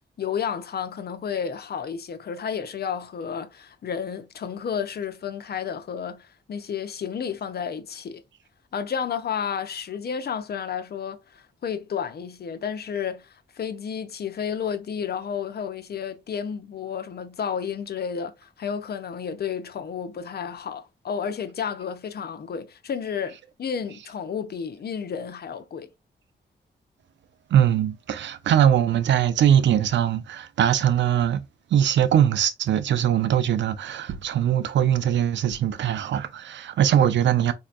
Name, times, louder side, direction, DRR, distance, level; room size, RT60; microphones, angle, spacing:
voice 1, 0.2-8.2 8.7-25.9, left 7 dB, 60° left, 0.6 m, -31 dB
voice 2, 27.5-31.4 31.7-37.5, right 10 dB, 90° right, 0.5 m, -21 dB
4.2 x 2.8 x 2.4 m
cardioid pair, 85°, 18 cm